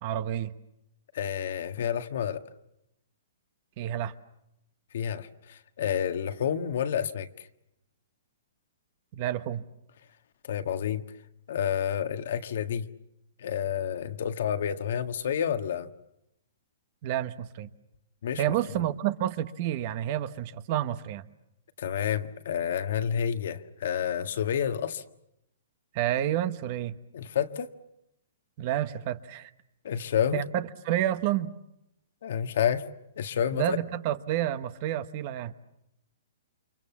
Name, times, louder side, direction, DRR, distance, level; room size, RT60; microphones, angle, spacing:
voice 1, 0.0-0.5 3.8-4.1 9.1-9.6 17.0-17.7 18.4-21.3 25.9-27.0 28.6-29.5 30.3-31.5 33.5-35.5, right 12 dB, 35° right, 12 dB, 1.2 m, -29 dB
voice 2, 1.1-2.4 4.9-7.3 10.5-11.0 11.5-12.9 13.4-15.9 18.2-18.4 21.8-25.0 27.1-27.7 29.8-30.4 32.2-32.8 33.2-33.8, left 8 dB, 60° left, 8 dB, 1.7 m, -29 dB
29.5 x 26.5 x 7.3 m, 0.82 s
hypercardioid pair, 165°, 0 cm